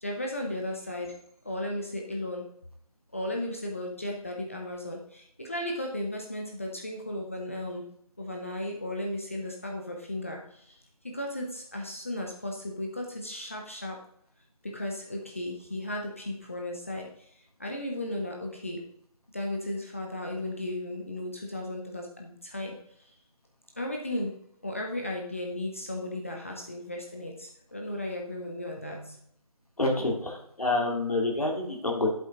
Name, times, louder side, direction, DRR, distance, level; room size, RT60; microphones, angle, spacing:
voice 1, 0.0-1.2 1.4-2.5 3.1-7.8 8.2-14.0 14.6-18.8 19.3-23.0 23.8-24.4 24.6-29.2, left 1 dB, 20° left, 0 dB, 0.8 m, -35 dB
voice 2, 29.8-32.1, left 2 dB, 70° left, 1 dB, 2.7 m, -27 dB
8.0 x 7.9 x 3.7 m, 0.68 s
figure-of-eight pair, 170°, 19 cm